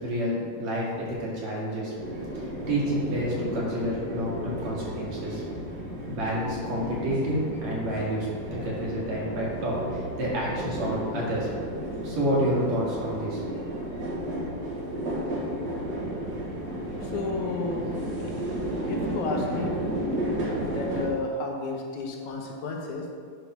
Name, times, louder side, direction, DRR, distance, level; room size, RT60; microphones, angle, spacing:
voice 1, 0.0-1.9 2.3-5.4 6.1-11.5 12.0-13.4, equal, 65° right, -6 dB, 3.2 m, -29 dB
sound 1, 2.0-21.1, right 1 dB, 50° right, 1.4 m, -33 dB
voice 2, 17.0-17.8 18.9-19.8 20.6-23.1, left 3 dB, 75° left, 1 dB, 2.3 m, -32 dB
10.0 x 3.6 x 6.0 m, 2.1 s
omnidirectional pair, 3.5 m